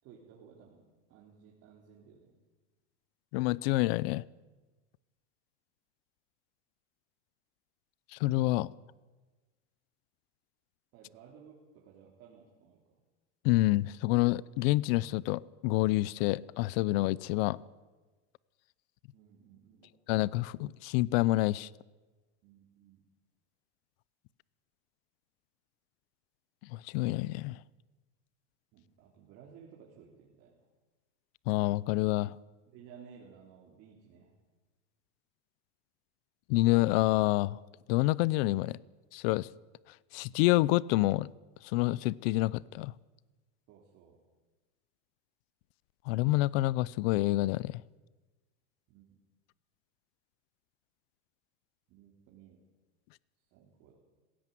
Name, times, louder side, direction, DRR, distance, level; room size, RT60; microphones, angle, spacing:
voice 1, 0.0-2.4 8.6-8.7 10.9-13.0 19.1-19.9 22.4-23.0 28.7-30.7 32.7-34.3 43.7-44.2 48.9-49.2 51.9-52.6 53.5-54.0, right 7 dB, 45° right, 3.5 m, -56 dB
voice 2, 3.3-4.2 8.1-8.7 13.4-17.6 20.1-21.7 26.6-27.6 31.5-32.4 36.5-37.6 37.9-38.8 39.1-39.5 40.1-41.3 41.6-42.9 46.1-47.8, left 18 dB, 60° left, 0.6 m, -28 dB
20.0 x 16.5 x 9.3 m
supercardioid pair, 160°, 35 cm